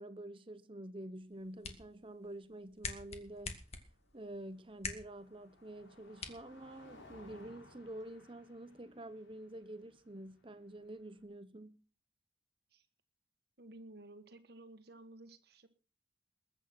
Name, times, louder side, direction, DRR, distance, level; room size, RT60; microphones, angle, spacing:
voice 1, 0.0-3.6 4.1-11.8, right 1 dB, 25° right, 0.9 m, -48 dB
sound 1, 1.2-7.2, left 4 dB, 35° left, 2.0 m, -48 dB
Car passing by, 3.1-11.2, left 2 dB, 85° left, 6.2 m, -62 dB
voice 2, 13.6-15.7, right 2 dB, 55° right, 1.7 m, -54 dB
21.0 x 8.9 x 6.1 m
head